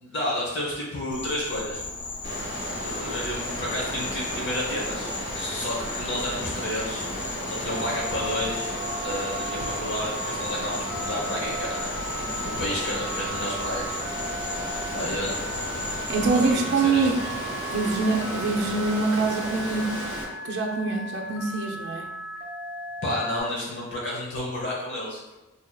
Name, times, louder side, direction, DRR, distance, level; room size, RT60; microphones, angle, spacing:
voice 1, 0.0-1.8 2.8-7.1 7.5-8.7 9.0-11.9 12.4-13.9 14.9-15.5 16.5-17.1 23.0-25.3, left 1 dB, 55° left, -4 dB, 0.8 m, -31 dB
Insect, 1.1-16.5, left 3 dB, 25° left, 0.3 m, -36 dB
Water, 2.2-20.2, equal, 75° left, 1.2 m, -34 dB
Telephone, 7.7-23.4, right 2 dB, 20° right, 1.1 m, -37 dB
voice 2, 16.1-17.2 17.7-20.1 20.4-22.1, right 3 dB, 55° right, 0 dB, 0.5 m, -25 dB
4.5 x 2.7 x 2.2 m, 1.0 s
head